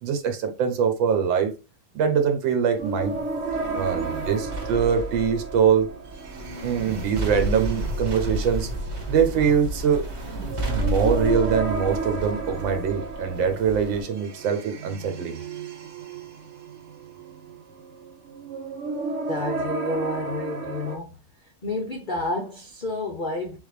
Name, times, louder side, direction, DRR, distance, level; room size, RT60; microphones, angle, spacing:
voice 1, 0.0-1.5 1.9-3.2 3.7-5.9 6.6-8.7 9.1-10.0 10.7-15.4, right 7 dB, 85° right, 1.5 m, -23 dB
sound 1, 2.7-14.0, right 1 dB, 45° right, 1.2 m, -32 dB
sound 2, 2.8-21.0, right 4 dB, 65° right, 1.3 m, -34 dB
voice 2, 19.3-21.2 21.6-23.6, left 2 dB, 65° left, 0.4 m, -30 dB
4.0 x 3.6 x 3.2 m
omnidirectional pair, 2.0 m